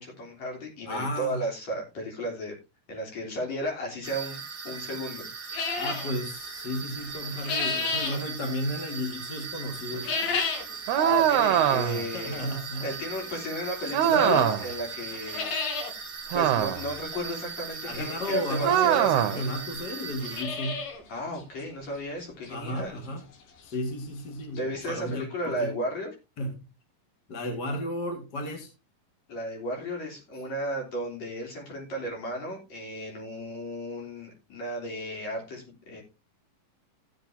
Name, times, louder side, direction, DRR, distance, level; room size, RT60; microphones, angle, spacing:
voice 1, 0.0-2.6 2.9-5.6 11.0-12.5 12.8-15.5 16.3-19.5 21.1-23.0 24.6-26.1 29.3-36.0, equal, 50° left, -1 dB, 4.6 m, -34 dB
voice 2, 0.9-1.5 5.8-10.3 12.1-12.9 14.0-14.5 17.8-20.9 22.5-23.2 23.6-25.7 26.4-26.7 27.3-28.7, left 1 dB, 35° left, 3 dB, 2.0 m, -33 dB
sound 1, 4.0-20.4, right 5 dB, 30° right, 2.6 m, -39 dB
sound 2, 5.5-6.1 7.1-8.2 9.9-10.7 11.1-11.2 12.1-12.2 13.8-13.9 14.4-14.5 14.7-14.8 15.1-15.9 16.3-16.4 16.6-16.7 18.2-18.3 19.1-19.2 19.4-19.5 20.0-21.0 21.4-21.5 22.0-22.1 22.5-22.6 24.3-24.4 24.6-24.7 25.1-25.2, left 4 dB, 80° left, 3.7 m, -31 dB
sound 3, 10.9-12.1 13.9-14.8 16.3-17.0 18.6-19.4, right 10 dB, 75° right, 1.9 m, -23 dB
15.0 x 8.4 x 2.8 m, 0.27 s
omnidirectional pair, 4.0 m